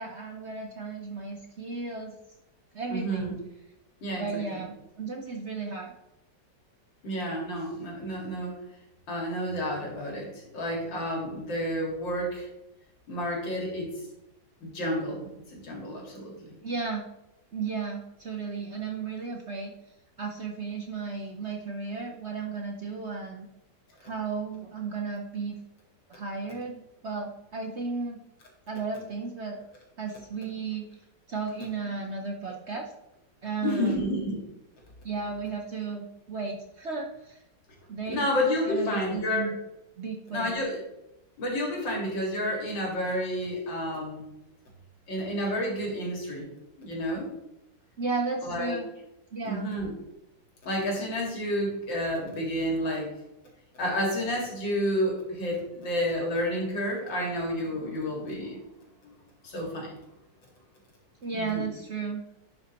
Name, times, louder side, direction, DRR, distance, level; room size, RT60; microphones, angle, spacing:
voice 1, 0.0-2.1 2.7-3.4 4.2-5.9 16.6-17.0 17.5-19.7 20.2-23.5 24.0-25.5 26.1-28.2 28.7-29.6 30.0-30.9 31.3-32.9 33.4-34.0 35.0-37.4 37.9-38.3 38.7-39.6 40.0-40.7 48.0-48.9 49.3-49.7 61.2-62.2, right 4 dB, 50° right, 1 dB, 0.9 m, -34 dB
voice 2, 2.9-3.3 4.0-4.6 7.0-8.6 9.1-12.5 13.1-13.9 14.6-16.5 33.6-34.4 38.1-39.5 40.3-40.8 41.4-44.2 45.1-46.5 46.8-47.3 48.4-48.8 49.4-49.9 50.6-53.1 53.8-58.6 59.0-59.1 59.4-60.0 61.3-61.7, equal, 80° left, -1 dB, 2.8 m, -30 dB
10.5 x 5.5 x 3.0 m, 0.88 s
omnidirectional pair, 2.0 m